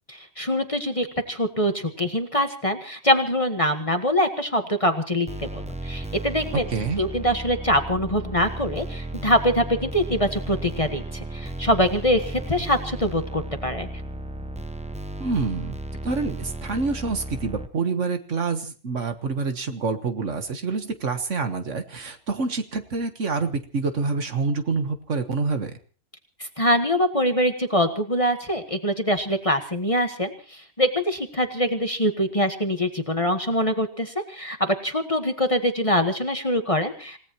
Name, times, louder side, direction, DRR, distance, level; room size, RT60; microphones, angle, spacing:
voice 1, 0.1-6.6 7.0-13.9 26.6-37.2, equal, 25° left, 6 dB, 1.4 m, -24 dB
sound 1, 5.3-17.7, right 1 dB, 5° right, 0.6 m, -34 dB
voice 2, 6.5-7.0 15.2-15.8 16.0-25.7, right 4 dB, 55° right, 8 dB, 1.6 m, -27 dB
28.0 x 17.0 x 3.0 m, 0.38 s
omnidirectional pair, 1.5 m